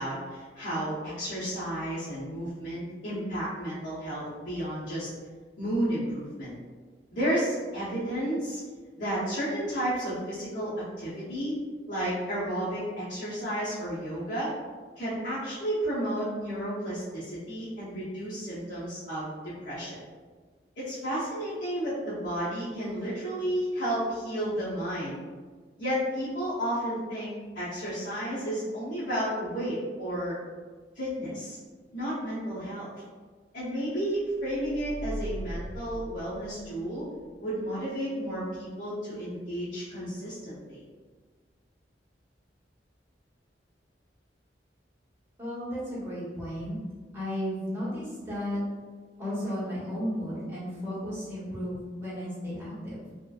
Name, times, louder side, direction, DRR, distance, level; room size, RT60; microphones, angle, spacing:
voice 1, 0.0-5.1 5.6-6.5 7.1-8.6 9.0-11.6 11.9-14.5 15.0-19.3 19.6-20.0 20.8-25.2 25.8-30.4 30.9-31.6 31.9-32.9 33.5-37.1 37.4-40.8, right 1 dB, 70° left, -12 dB, 0.8 m, -32 dB
sound 1, 34.4-37.0, equal, 50° right, 1.0 m, -39 dB
voice 2, 45.4-46.8 47.1-48.6 49.2-53.0, equal, 15° right, -10 dB, 1.1 m, -34 dB
2.9 x 2.4 x 2.3 m, 1.5 s
head